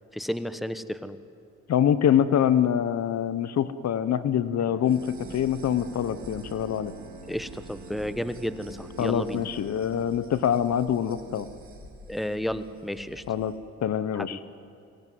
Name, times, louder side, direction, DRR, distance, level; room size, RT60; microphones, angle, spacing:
voice 1, 0.1-1.2 7.3-9.4 12.1-13.2 14.1-14.3, equal, ahead, 13 dB, 1.1 m, -32 dB
voice 2, 1.7-6.9 9.0-11.5 13.3-13.5 13.8-14.4, left 9 dB, 60° left, 14 dB, 1.1 m, -25 dB
Bowed string instrument, 4.6-10.4, right 5 dB, 70° right, 2.9 m, -47 dB
sound 1, 4.8-13.5, right 2 dB, 45° right, 4.0 m, -48 dB
23.0 x 17.5 x 9.4 m, 2.4 s
supercardioid pair, 70°, 31 cm